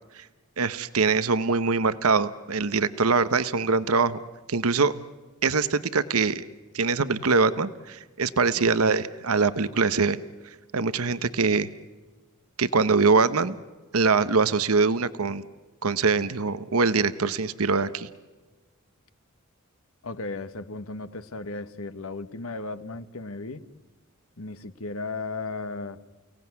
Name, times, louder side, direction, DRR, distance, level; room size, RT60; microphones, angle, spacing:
voice 1, 0.6-4.2 4.5-4.9 5.4-6.4 6.7-10.2 10.7-11.7 12.6-13.6 13.9-15.4 15.8-18.1, right 4 dB, 85° right, 13 dB, 1.0 m, -23 dB
voice 2, 20.0-23.6 24.4-26.0, left 3 dB, 75° left, 12 dB, 1.3 m, -35 dB
30.0 x 18.0 x 9.6 m, 1.3 s
head